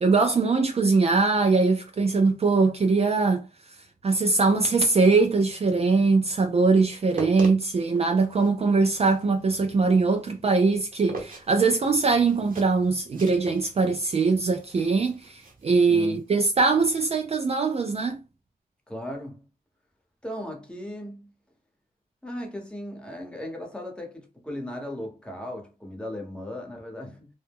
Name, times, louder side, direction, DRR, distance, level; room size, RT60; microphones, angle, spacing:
voice 1, 0.0-3.4 4.0-18.2, right 4 dB, 40° right, 0.4 m, -22 dB
sound 1, 6.9-16.4, right 3 dB, 60° right, 0.9 m, -42 dB
voice 2, 15.9-16.2 18.9-19.4 20.2-21.3 22.2-27.3, left 1 dB, 5° left, 1.0 m, -37 dB
2.1 x 2.0 x 3.4 m
cardioid pair, 65°, 16 cm